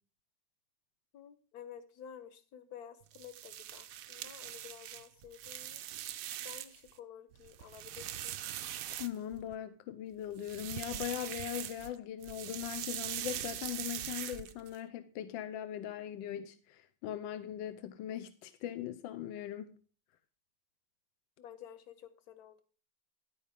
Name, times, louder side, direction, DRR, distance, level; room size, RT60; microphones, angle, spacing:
voice 1, 1.1-5.8 6.4-8.4 21.4-22.6, left 9 dB, 60° left, 1.2 m, -52 dB
sound 1, 3.1-6.9 7.3-9.6 10.3-11.9 12.2-14.8, right 12 dB, 85° right, 0.7 m, -42 dB
voice 2, 9.0-19.8, left 11 dB, 85° left, 1.4 m, -40 dB
10.5 x 8.6 x 3.5 m
omnidirectional pair, 2.0 m